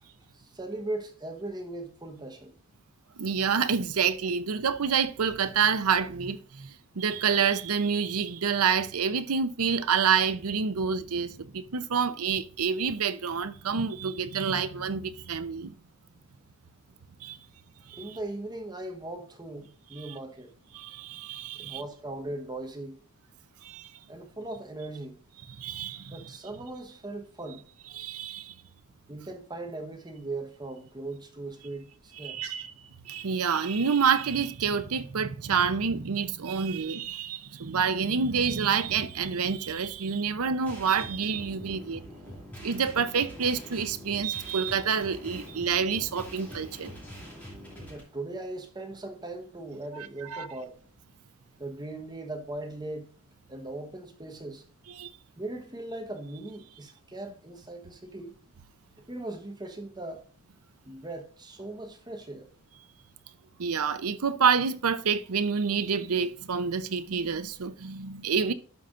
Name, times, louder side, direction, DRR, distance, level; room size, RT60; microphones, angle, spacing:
voice 1, 0.3-2.5 17.9-20.5 21.1-21.2 21.6-23.0 24.1-25.2 26.1-27.6 29.1-32.6 47.9-50.8 51.6-53.1 53.5-54.6 55.4-58.3 59.1-60.2 60.8-62.5, right 2 dB, 20° right, 1.1 m, -39 dB
voice 2, 3.2-15.7 17.2-17.4 17.9-18.0 20.0-20.1 20.7-21.8 23.6-23.9 25.5-26.2 27.9-28.5 32.1-32.7 33.1-42.0 42.6-46.9 49.9-50.5 55.0-55.1 63.6-68.5, right 6 dB, 80° right, 0.7 m, -28 dB
sound 1, 40.7-48.0, equal, 10° left, 2.9 m, -44 dB
12.0 x 5.7 x 2.5 m
head